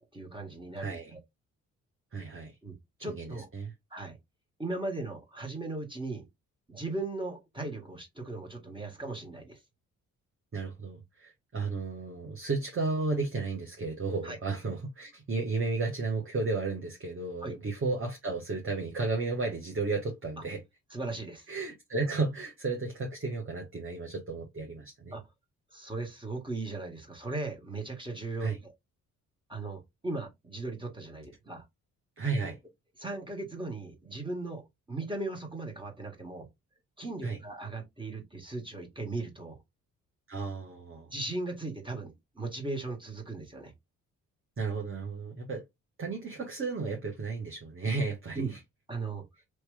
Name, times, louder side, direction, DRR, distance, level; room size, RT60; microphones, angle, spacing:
voice 1, 0.1-1.2 2.6-2.7 3.0-3.5 3.9-4.2 4.6-6.2 6.7-9.6 14.2-14.4 17.4-17.5 20.9-21.5 25.1-25.2 25.7-28.7 29.5-31.6 33.0-36.5 37.0-39.6 41.1-43.7 48.3-48.5 48.9-49.2, right 2 dB, 10° right, 1.7 m, -37 dB
voice 2, 0.8-1.1 2.1-2.6 3.1-3.7 10.5-20.6 21.5-25.1 28.4-28.6 32.2-32.6 37.2-37.4 40.3-41.1 44.6-45.6 46.0-48.6, right 3 dB, 30° right, 1.1 m, -33 dB
3.1 x 2.9 x 3.4 m
hypercardioid pair, 45°, 42 cm